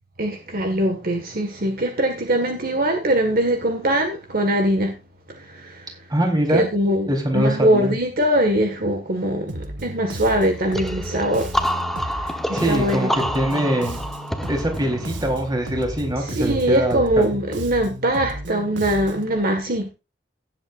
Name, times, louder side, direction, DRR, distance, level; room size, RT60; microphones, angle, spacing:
voice 1, 0.2-5.0 5.3-6.0 6.5-7.1 7.3-11.5 12.0-13.1 16.2-19.9, right 1 dB, 55° right, 1.8 m, -22 dB
voice 2, 6.1-6.7 7.1-7.9 12.5-14.0 14.5-17.3, right 1 dB, 25° right, 3.9 m, -23 dB
Bass guitar, 9.5-19.4, right 1 dB, 80° right, 1.8 m, -34 dB
sound 1, 10.7-16.3, equal, ahead, 1.1 m, -28 dB
17.5 x 8.1 x 2.6 m
head